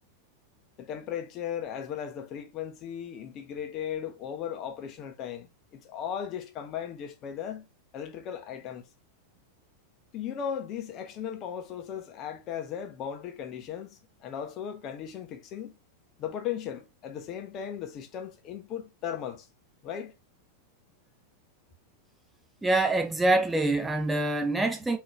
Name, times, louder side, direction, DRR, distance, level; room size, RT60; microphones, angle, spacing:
voice 1, 0.8-7.7 7.9-8.9 10.1-15.7 16.2-19.5 19.8-20.1, left 9 dB, 35° left, 0.7 m, -37 dB
voice 2, 22.6-25.0, right 2 dB, 10° right, 0.5 m, -25 dB
3.8 x 2.7 x 3.2 m
figure-of-eight pair, 90°, 0 cm